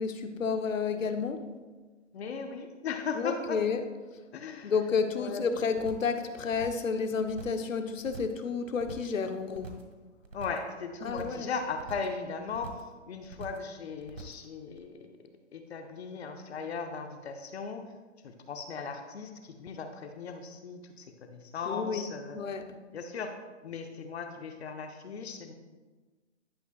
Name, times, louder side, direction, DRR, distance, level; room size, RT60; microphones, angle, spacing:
voice 1, 0.0-1.5 3.2-3.8 4.6-9.7 11.0-11.5 21.7-22.1 22.3-22.8, left 5 dB, 85° left, 7 dB, 0.9 m, -31 dB
voice 2, 2.1-3.6 4.3-4.7 5.2-5.5 10.3-12.7 13.1-15.2 15.5-17.8 18.2-22.4 22.9-23.3 23.6-25.5, left 5 dB, 55° left, 6 dB, 0.8 m, -37 dB
sound 1, 5.7-6.1 6.4-6.9 7.2-7.7 8.0-8.4 8.7-9.2 9.5-9.9 10.2-10.7 11.0-11.5 11.8-12.2 12.5-12.9 13.2-13.7 14.0-14.5 14.8-14.9, right 4 dB, 80° right, 1.6 m, -45 dB
11.5 x 6.2 x 2.3 m, 1.3 s
hypercardioid pair, 145°, 38 cm